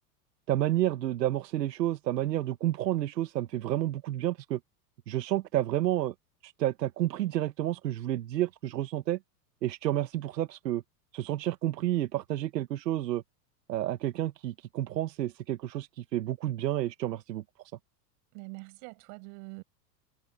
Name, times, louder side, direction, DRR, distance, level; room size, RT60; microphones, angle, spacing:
voice 1, 0.5-4.6 5.1-6.1 6.4-9.2 9.6-10.8 11.1-13.2 13.7-17.4, right 14 dB, 85° right, 1.4 m, -30 dB
voice 2, 18.3-19.6, right 37 dB, 55° right, 5.8 m, -44 dB
hypercardioid pair, 115°, 49 cm